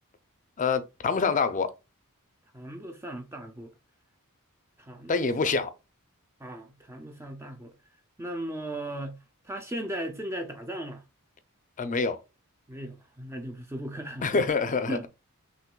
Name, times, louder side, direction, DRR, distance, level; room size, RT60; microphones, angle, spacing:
voice 1, 0.6-1.7 5.1-5.7 11.8-12.2 14.2-15.1, left 4 dB, 35° left, 0.5 m, -26 dB
voice 2, 2.5-3.7 4.8-5.6 6.4-7.7 8.2-9.2 9.4-11.0 12.7-14.5 14.9-15.1, right 1 dB, 10° right, 0.5 m, -37 dB
5.8 x 3.0 x 2.2 m
head